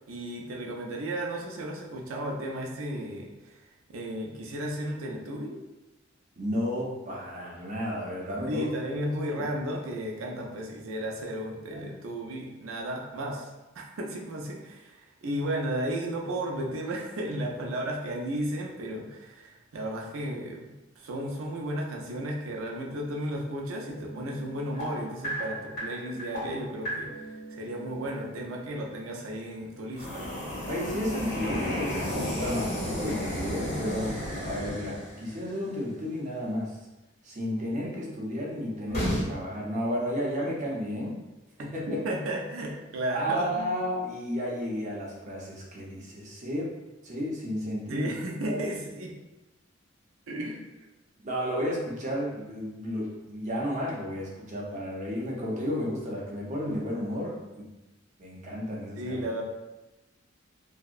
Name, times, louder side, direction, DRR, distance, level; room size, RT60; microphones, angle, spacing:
voice 1, 0.1-3.6 3.9-5.6 8.5-30.3 41.9-43.7 47.9-49.2 50.3-50.6 59.0-59.4, right 1 dB, 85° right, 0 dB, 0.5 m, -34 dB
voice 2, 6.4-8.7 9.0-9.2 11.7-11.9 30.7-36.8 37.2-41.2 41.6-42.0 43.1-46.8 47.0-48.1 48.5-48.6 51.2-57.7 58.2-59.2, equal, 40° right, -3 dB, 0.6 m, -32 dB
sound 1, 23.9-28.6 29.9-35.4 38.9-39.2, equal, 55° left, 1.3 m, -34 dB
2.7 x 2.0 x 2.4 m, 1.0 s
head